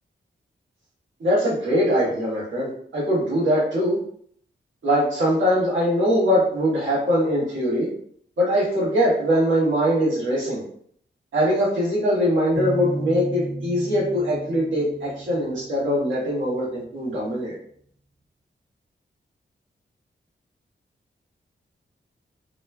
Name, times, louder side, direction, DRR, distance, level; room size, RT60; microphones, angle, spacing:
voice 1, 1.2-4.0 4.8-7.9 8.4-10.6 11.3-17.5, equal, 80° right, -7 dB, 1.2 m, -22 dB
sound 1, 12.6-16.2, right 1 dB, 15° left, 0.9 m, -34 dB
2.9 x 2.2 x 2.2 m, 0.63 s
cardioid pair, 75°, 20 cm